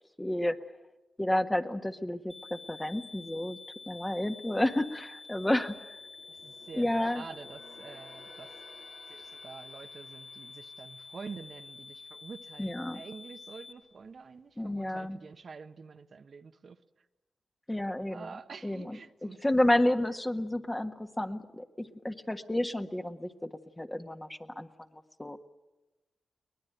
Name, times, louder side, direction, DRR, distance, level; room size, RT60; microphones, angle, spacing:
voice 1, 0.2-0.6 1.2-3.6 3.9-6.0 6.7-7.2 12.6-13.0 14.6-15.2 17.7-18.3 18.6-23.5 23.8-25.4, left 1 dB, 15° left, 6 dB, 1.6 m, -31 dB
sound 1, 2.3-13.7, left 4 dB, 45° left, 4.1 m, -49 dB
sound 2, 5.3-12.8 13.1-13.4 13.9-14.6 15.0-15.1, left 3 dB, 80° left, 2.5 m, -57 dB
voice 2, 6.3-8.5 9.1-16.8 18.1-19.4, right 5 dB, 60° right, 8 dB, 1.1 m, -47 dB
23.0 x 20.0 x 9.1 m, 1.1 s
cardioid pair, 60°, 0 cm